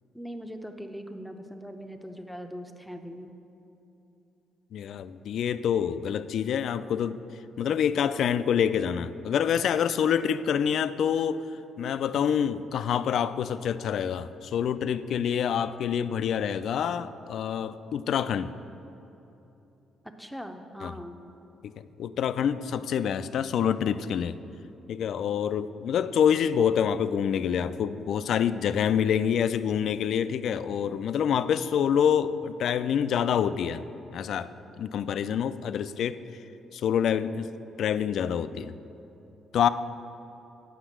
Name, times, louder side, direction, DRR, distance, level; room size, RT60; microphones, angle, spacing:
voice 1, 0.1-3.3 20.2-21.2, equal, ahead, 5 dB, 0.7 m, -40 dB
voice 2, 4.7-7.2 7.6-11.4 11.8-18.5 20.8-20.9 21.6-21.7 22.0-24.3 24.9-33.8 34.1-34.5 34.8-36.2 36.7-37.5 37.8-38.7 39.5-39.7, left 8 dB, 70° left, 13 dB, 0.3 m, -26 dB
8.1 x 5.7 x 7.4 m, 3.0 s
cardioid pair, 90°, 0 cm